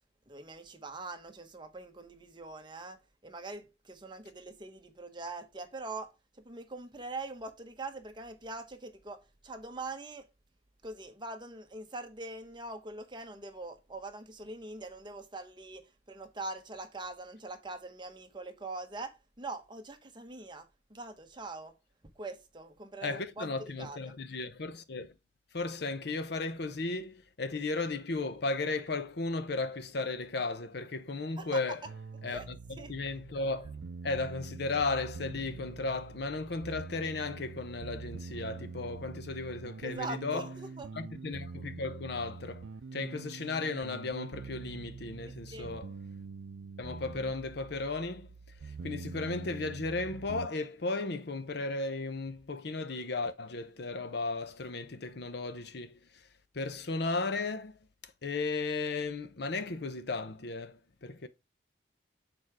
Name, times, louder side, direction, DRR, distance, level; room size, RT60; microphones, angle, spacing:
voice 1, 0.3-10.3 10.8-21.7 22.1-24.2 31.4-31.9 32.3-32.9 39.8-40.9 45.2-45.8, right 2 dB, 25° right, 1.0 m, -43 dB
voice 2, 23.0-25.1 25.5-31.8 32.2-32.4 32.9-33.8 34.0-40.5 41.0-42.7 42.9-45.9 46.8-48.3 48.6-56.2 56.5-61.3, left 3 dB, 60° left, 0.7 m, -35 dB
sound 1, 31.8-50.5, right 4 dB, 80° right, 0.5 m, -45 dB
6.5 x 4.5 x 4.8 m
head